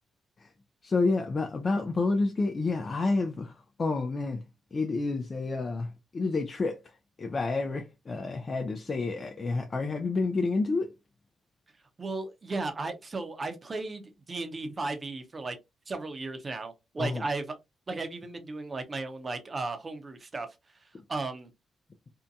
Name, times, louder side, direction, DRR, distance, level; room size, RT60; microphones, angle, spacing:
voice 1, 0.8-4.4 4.7-6.8 7.2-10.9 17.0-17.2 20.9-21.0, left 3 dB, 45° left, 0.4 m, -29 dB
voice 2, 12.0-15.6 15.9-17.6 17.9-20.5 20.8-21.5, right 3 dB, 40° right, 0.7 m, -35 dB
2.7 x 2.2 x 2.5 m
supercardioid pair, 55°, 0 cm